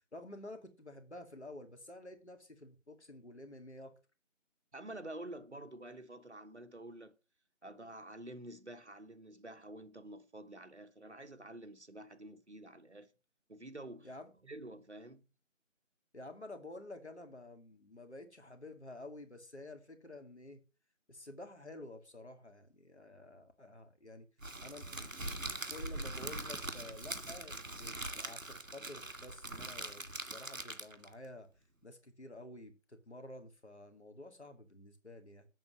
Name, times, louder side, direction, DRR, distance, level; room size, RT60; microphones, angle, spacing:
voice 1, 0.1-3.9 14.0-14.3 16.1-20.6 21.1-24.3 24.6-25.1 25.7-31.5 31.8-35.5, left 2 dB, 55° left, 2.4 m, -50 dB
voice 2, 4.7-7.2 7.6-13.1 13.5-14.1 14.4-15.2, right 1 dB, 55° right, 1.2 m, -49 dB
Crackle, 24.4-31.1, right 2 dB, 75° right, 1.9 m, -42 dB
8.2 x 6.8 x 7.3 m
figure-of-eight pair, 170°, 40 cm